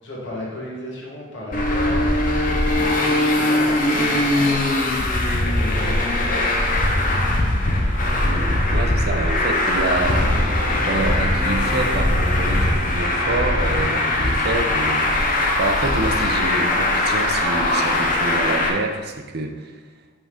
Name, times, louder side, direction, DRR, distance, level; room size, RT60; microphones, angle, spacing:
voice 1, 0.0-2.2 2.7-5.2 5.5-7.3, left 1 dB, 65° left, -4 dB, 1.6 m, -34 dB
Traffic noise roadway noise, 1.5-18.7, left 1 dB, 40° left, 0.7 m, -20 dB
voice 2, 8.2-10.5 10.7-15.0 15.6-19.8, right 2 dB, 50° right, 5 dB, 0.6 m, -27 dB
sound 1, 10.3-15.4, equal, 20° right, 1.0 m, -33 dB
5.1 x 3.7 x 5.1 m, 1.3 s
head